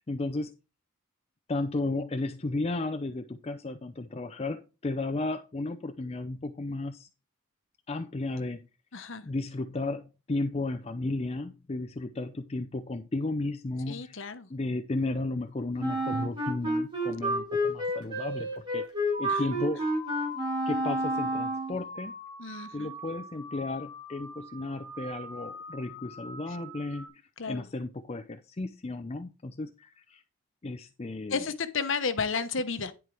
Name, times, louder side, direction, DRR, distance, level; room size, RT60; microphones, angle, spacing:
voice 1, 0.1-0.5 1.5-7.1 7.9-8.6 8.9-14.2 14.5-18.9 19.2-19.8 20.7-22.1 22.7-27.2 27.5-30.2 30.6-31.5, left 2 dB, 30° left, 0.5 m, -34 dB
voice 2, 8.9-9.2 13.9-14.5 19.3-19.4 22.4-22.9 27.4-27.7 31.3-32.9, left 5 dB, 60° left, 1.0 m, -32 dB
Wind instrument woodwind instrument, 15.8-21.8, equal, 20° right, 3.4 m, -30 dB
sound 1, 19.1-27.1, right 1 dB, 35° right, 3.9 m, -42 dB
10.5 x 4.5 x 4.7 m
head